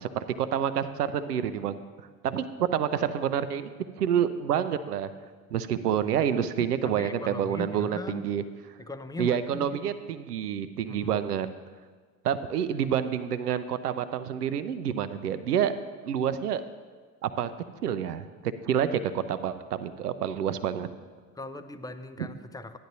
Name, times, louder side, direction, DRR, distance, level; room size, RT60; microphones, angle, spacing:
voice 1, 0.0-1.8 2.2-3.7 4.0-5.1 5.5-8.4 9.2-11.5 12.2-15.7 16.0-16.6 17.2-17.5 17.8-20.9, right 9 dB, 85° right, 12 dB, 0.5 m, -28 dB
voice 2, 6.6-8.3 8.8-9.9 10.8-11.2 21.3-22.8, left 2 dB, 10° left, 10 dB, 0.4 m, -40 dB
13.5 x 10.5 x 2.7 m, 1.5 s
figure-of-eight pair, 55°, 45 cm